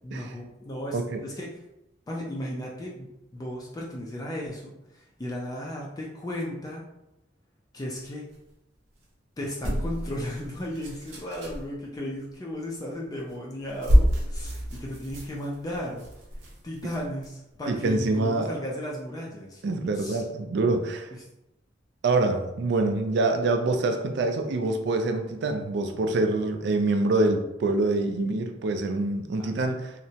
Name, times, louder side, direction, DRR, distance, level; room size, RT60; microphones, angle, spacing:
voice 1, 0.0-1.5 2.1-6.8 7.7-8.2 9.4-16.1 16.6-19.6 19.9-20.2 29.4-29.5, equal, 20° left, -3 dB, 0.3 m, -35 dB
sound 1, 9.6-11.7 13.2-13.3 13.7-17.3 17.8-17.9, equal, 85° right, 0.7 m, -27 dB
voice 2, 17.7-18.5 19.6-21.1 22.0-29.9, right 2 dB, 60° right, 5 dB, 0.4 m, -25 dB
2.8 x 2.1 x 2.7 m, 0.90 s
head